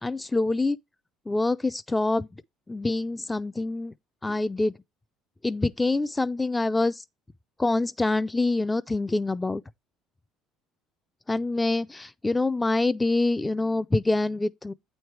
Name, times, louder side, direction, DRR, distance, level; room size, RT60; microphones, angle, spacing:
voice 1, 0.0-0.8 1.3-2.3 2.7-3.9 4.2-4.7 5.4-6.9 7.6-9.6 11.3-14.7, left 2 dB, 10° left, 0.4 m, -25 dB
8.7 x 3.2 x 4.6 m
cardioid pair, 115°, 0 cm